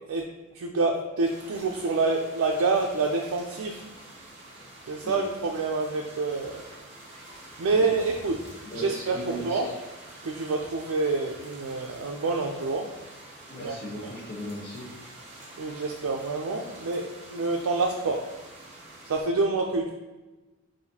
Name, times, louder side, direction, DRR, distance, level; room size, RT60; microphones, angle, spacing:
voice 1, 0.5-3.8 4.9-6.6 7.6-8.4 8.7-9.7 10.2-12.9 13.6-13.8 15.6-18.3 19.1-19.9, right 3 dB, 85° right, 0 dB, 0.4 m, -27 dB
sound 1, 1.2-19.2, right 1 dB, 30° right, 0.8 m, -47 dB
voice 2, 8.6-9.6 13.5-14.9, equal, 30° left, -8 dB, 0.9 m, -38 dB
5.7 x 2.6 x 2.8 m, 1.2 s
head